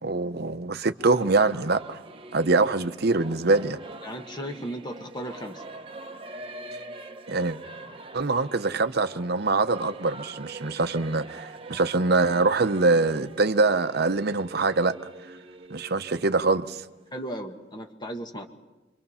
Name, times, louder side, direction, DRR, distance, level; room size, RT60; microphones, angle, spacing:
voice 1, 0.0-2.0 2.3-3.8 7.3-7.6 8.1-15.0 15.7-16.8, right 3 dB, 55° right, 0.9 m, -24 dB
Singing / Musical instrument, 1.0-17.3, right 2 dB, 30° right, 1.0 m, -44 dB
voice 2, 4.0-5.6 17.1-18.5, right 1 dB, 25° left, 1.7 m, -36 dB
28.0 x 24.5 x 5.7 m
head